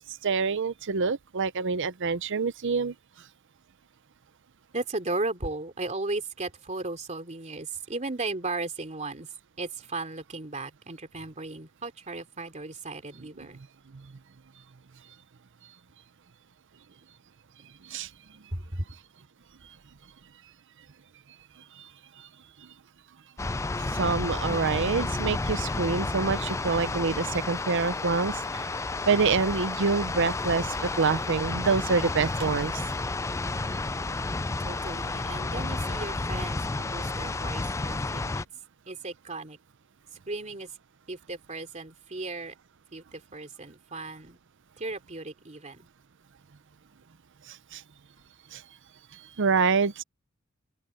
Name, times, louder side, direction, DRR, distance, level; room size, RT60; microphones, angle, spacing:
voice 1, 0.0-2.9 17.8-18.1 21.8-21.9 22.2-22.3 23.9-28.7 29.1-32.8 47.5-47.8 48.5-48.6 49.1-50.0, right 5 dB, 60° right, 0.7 m, -26 dB
voice 2, 4.7-9.3 9.6-13.6 18.5-18.8 34.6-38.4 38.9-39.6 40.3-40.7 41.1-42.5 42.9-44.4 44.8-45.9, right 2 dB, 35° right, 3.1 m, -36 dB
sound 1, 23.4-38.4, left 3 dB, 15° left, 0.4 m, -31 dB
open air
head